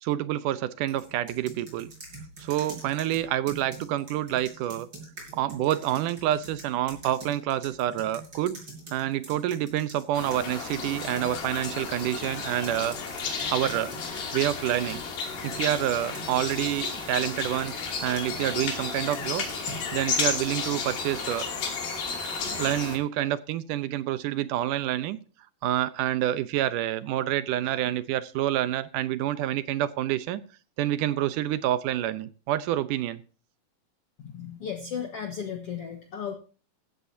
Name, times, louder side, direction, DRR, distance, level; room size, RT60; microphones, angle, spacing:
voice 1, 0.0-1.9 2.4-4.9 5.3-8.6 8.9-13.9 14.3-15.0 15.4-17.8 18.0-19.5 19.9-21.5 22.6-25.2 25.6-30.4 30.8-33.2, right 13 dB, 70° right, 14 dB, 2.2 m, -28 dB
sound 1, 0.9-10.0 10.3-17.0 17.6-19.9, right 2 dB, 30° right, 6.8 m, -45 dB
sound 2, 10.1-23.0, left 5 dB, 80° left, 4.5 m, -33 dB
voice 2, 34.2-36.3, left 7 dB, 55° left, 4 dB, 1.9 m, -35 dB
16.0 x 14.0 x 2.8 m, 0.36 s
omnidirectional pair, 4.1 m